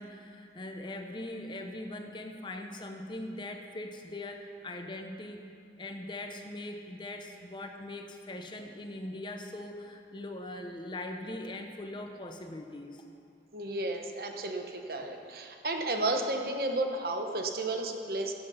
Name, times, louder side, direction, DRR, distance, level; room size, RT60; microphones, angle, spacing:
voice 1, 0.0-5.4 5.8-13.0, left 1 dB, 25° left, 4 dB, 0.8 m, -41 dB
voice 2, 13.5-18.3, right 2 dB, 55° right, 4 dB, 1.1 m, -32 dB
15.5 x 7.9 x 5.7 m, 2.5 s
head